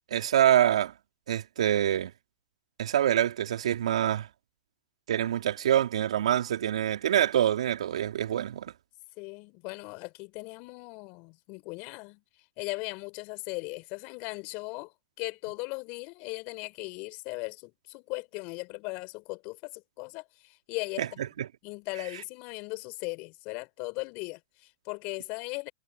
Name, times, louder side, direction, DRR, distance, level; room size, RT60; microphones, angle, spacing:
voice 1, 0.1-0.9 1.3-2.1 2.8-4.3 5.1-8.7 21.0-21.1 21.4-21.5, right 11 dB, 75° right, 3.0 m, -25 dB
voice 2, 9.2-12.2 12.6-21.2 21.6-25.7, left 28 dB, 45° left, 4.8 m, -38 dB
hypercardioid pair, 110°, 3 cm